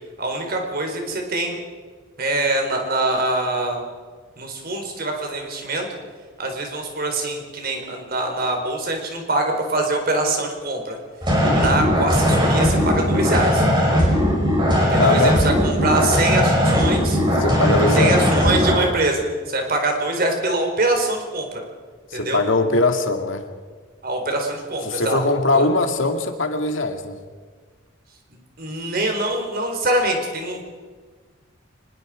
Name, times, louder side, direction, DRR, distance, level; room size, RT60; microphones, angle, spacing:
voice 1, 0.2-1.6 2.2-3.8 4.4-5.9 6.4-11.0 11.5-13.7 14.9-17.2 18.0-21.6 22.1-22.4 24.0-25.2 25.5-25.7 28.6-30.6, right 2 dB, 50° right, 3 dB, 4.3 m, -24 dB
sound 1, 11.2-18.8, equal, 25° right, 5.8 m, -18 dB
voice 2, 11.4-11.8 15.0-15.4 17.4-18.2 22.1-23.4 24.9-27.2, left 2 dB, 75° left, 5 dB, 2.1 m, -21 dB
24.5 x 21.5 x 5.1 m, 1.5 s
head